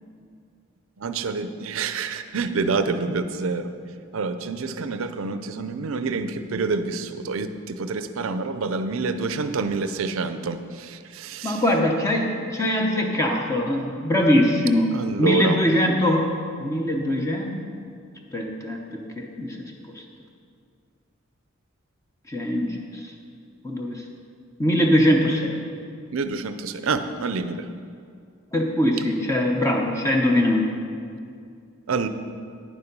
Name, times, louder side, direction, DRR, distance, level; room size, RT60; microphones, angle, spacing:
voice 1, 1.0-3.7 4.1-11.6 14.9-15.6 26.1-27.7 31.9-32.1, right 4 dB, 75° right, 10 dB, 0.5 m, -27 dB
voice 2, 11.4-14.9 15.2-16.3 16.6-17.6 18.3-18.8 19.2-19.6 22.3-23.1 23.6-24.0 24.6-25.6 28.5-30.7, left 1 dB, 15° left, 0 dB, 0.7 m, -22 dB
9.9 x 7.0 x 5.3 m, 2.3 s
head